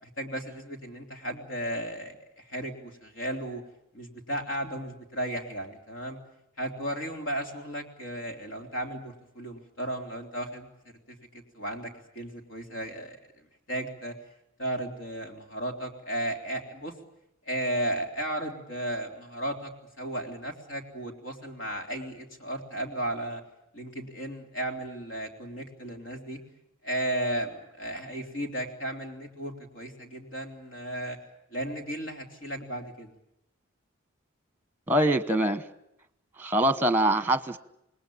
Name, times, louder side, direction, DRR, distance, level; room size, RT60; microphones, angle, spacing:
voice 1, 0.0-3.6 3.9-6.2 6.6-10.7 11.1-13.2 13.7-14.1 14.6-17.0 17.5-19.7 20.0-23.4 23.7-26.4 26.8-31.2 31.5-33.1, right 1 dB, 70° left, 3.5 m, -34 dB
voice 2, 34.9-35.6 36.4-37.6, right 1 dB, 10° right, 1.1 m, -24 dB
27.5 x 20.0 x 8.7 m
head